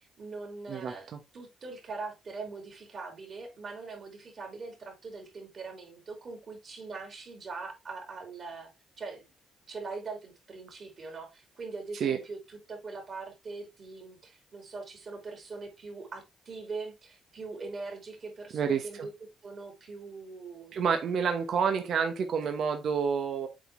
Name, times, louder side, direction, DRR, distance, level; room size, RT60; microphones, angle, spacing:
voice 1, 0.0-8.7 9.0-9.2 9.7-19.1 19.4-20.9, right 4 dB, 45° right, 3.4 m, -42 dB
voice 2, 0.7-1.2 11.9-12.2 18.5-19.1 20.7-23.5, right 6 dB, 65° right, 1.1 m, -29 dB
7.8 x 4.2 x 3.3 m
cardioid pair, 90°, 0 cm